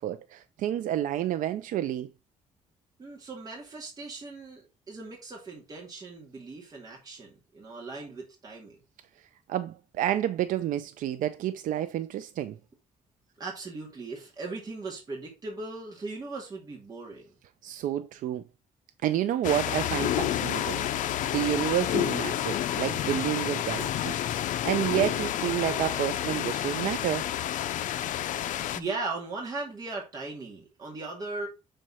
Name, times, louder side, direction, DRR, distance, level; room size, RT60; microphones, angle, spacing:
voice 1, 0.0-2.1 9.5-12.6 17.6-18.4 19.0-27.3, right 12 dB, 90° right, 0.5 m, -30 dB
voice 2, 3.0-8.8 13.4-17.2 28.7-31.5, right 3 dB, 30° right, 2.2 m, -38 dB
sound 1, 19.4-28.8, left 11 dB, 80° left, 0.5 m, -29 dB
6.4 x 4.4 x 4.8 m
cardioid pair, 160°, 13 cm